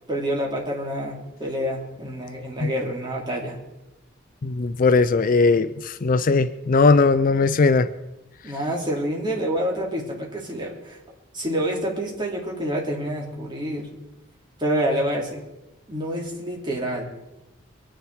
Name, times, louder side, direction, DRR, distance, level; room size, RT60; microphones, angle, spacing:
voice 1, 0.1-3.6 8.4-11.0 11.3-13.9 14.6-15.4 15.9-17.1, equal, 25° right, -2 dB, 3.0 m, -27 dB
voice 2, 4.4-7.9, left 4 dB, 45° left, 13 dB, 0.5 m, -19 dB
23.5 x 10.0 x 4.7 m, 0.98 s
head